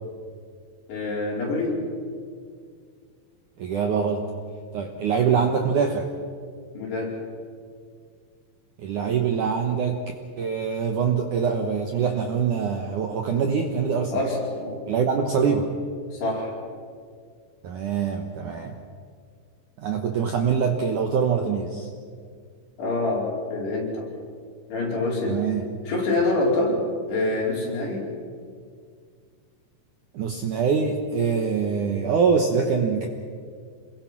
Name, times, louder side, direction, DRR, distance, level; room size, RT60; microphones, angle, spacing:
voice 1, 0.9-1.8 6.7-7.2 14.1-14.8 16.1-16.5 22.8-24.1 24.7-25.4 25.9-26.8 27.1-28.1, left 2 dB, 65° left, -3 dB, 7.0 m, -26 dB
voice 2, 3.6-4.3 4.7-6.1 8.8-10.0 10.4-14.1 14.9-15.8 17.6-18.8 19.8-21.9 25.2-25.6 30.1-33.1, right 6 dB, 70° right, 4 dB, 2.0 m, -24 dB
28.0 x 21.5 x 6.1 m, 2.1 s
omnidirectional pair, 5.2 m